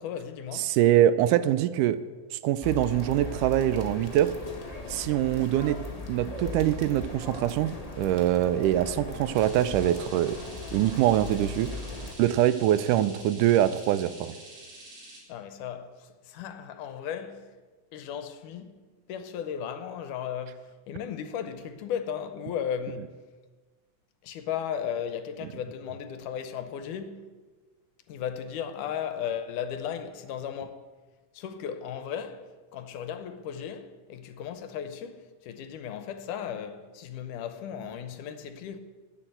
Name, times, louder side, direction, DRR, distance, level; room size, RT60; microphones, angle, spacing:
voice 1, 0.0-0.8 15.3-17.6 17.9-18.8 19.1-23.2 24.2-27.4 28.1-30.8 31.3-38.8, left 8 dB, 80° left, 2.4 m, -36 dB
voice 2, 0.5-2.0 2.3-4.3 4.9-5.8 6.1-10.4 10.7-11.7 12.2-14.4, right 12 dB, 85° right, 2.1 m, -24 dB
sound 1, 2.6-12.1, left 3 dB, 30° left, 0.6 m, -38 dB
sound 2, 9.3-15.2, right 2 dB, 70° right, 4.3 m, -47 dB
11.0 x 9.2 x 7.9 m
omnidirectional pair, 3.7 m